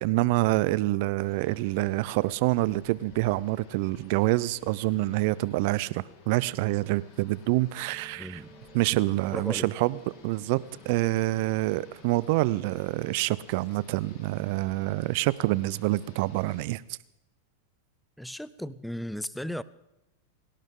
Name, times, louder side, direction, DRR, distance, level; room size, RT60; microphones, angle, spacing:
voice 1, 0.0-8.4 8.7-10.6 10.8-16.8, right 19 dB, 60° right, 0.6 m, -26 dB
sound 1, 1.2-16.6, left 6 dB, 50° left, 4.3 m, -54 dB
sound 2, 7.8-12.8, right 6 dB, 35° right, 4.0 m, -55 dB
voice 2, 8.1-8.5 9.3-9.7 18.2-19.6, equal, ahead, 0.6 m, -36 dB
28.5 x 12.0 x 3.8 m
hypercardioid pair, 110°, 0 cm